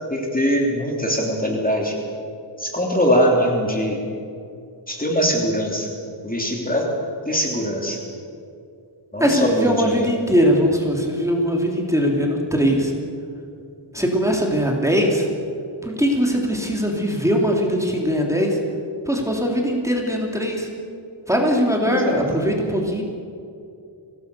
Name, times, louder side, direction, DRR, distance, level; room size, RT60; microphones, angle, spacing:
voice 1, 0.1-2.0 2.6-4.0 4.9-5.9 6.2-6.9 7.3-8.0 9.1-10.1 21.8-22.2, equal, 20° left, 0 dB, 3.1 m, -22 dB
voice 2, 9.2-12.9 13.9-15.3 15.8-18.6 19.0-20.7 21.3-23.0, equal, 5° right, 0 dB, 3.4 m, -20 dB
24.0 x 18.0 x 7.0 m, 2.5 s
wide cardioid pair, 95°, 48 cm